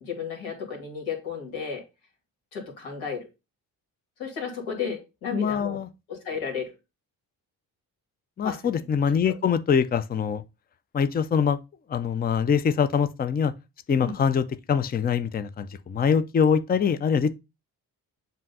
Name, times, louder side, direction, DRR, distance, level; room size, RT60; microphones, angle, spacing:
voice 1, 0.0-1.8 2.5-3.2 4.2-5.8 6.1-6.7 8.4-8.6 14.0-14.2, left 6 dB, 70° left, 2.2 m, -33 dB
voice 2, 5.3-5.9 8.4-10.4 10.9-11.6 11.9-13.5 13.9-17.3, left 7 dB, 20° left, 0.5 m, -24 dB
7.4 x 2.6 x 5.3 m
hypercardioid pair, 40°, 49 cm